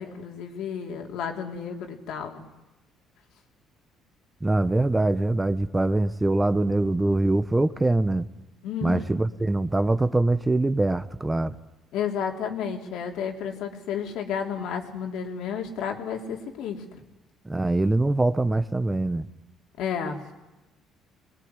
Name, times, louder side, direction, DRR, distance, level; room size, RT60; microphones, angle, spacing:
voice 1, 0.0-2.5 8.6-9.0 11.9-17.0 19.8-20.2, left 7 dB, 75° left, 2 dB, 3.8 m, -32 dB
voice 2, 4.4-8.3 8.8-11.5 17.4-19.3, right 2 dB, 15° right, 12 dB, 1.2 m, -23 dB
23.0 x 21.5 x 9.9 m, 1.0 s
supercardioid pair, 85°, 0 cm